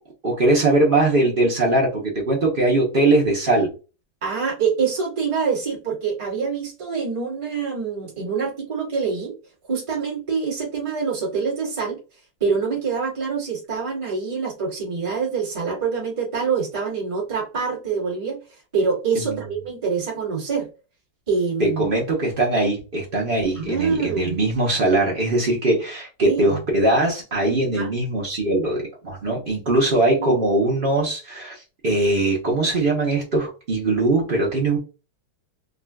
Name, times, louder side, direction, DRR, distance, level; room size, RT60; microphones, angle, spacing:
voice 1, 0.2-3.7 19.1-19.4 21.6-34.8, right 2 dB, 55° right, -2 dB, 0.5 m, -21 dB
voice 2, 4.2-9.4 9.7-12.0 12.4-20.7 21.3-21.9 23.5-24.4 26.2-26.6 27.7-27.9 30.1-30.4, right 5 dB, 20° right, -5 dB, 1.1 m, -25 dB
3.7 x 2.4 x 2.2 m, 0.31 s
omnidirectional pair, 2.2 m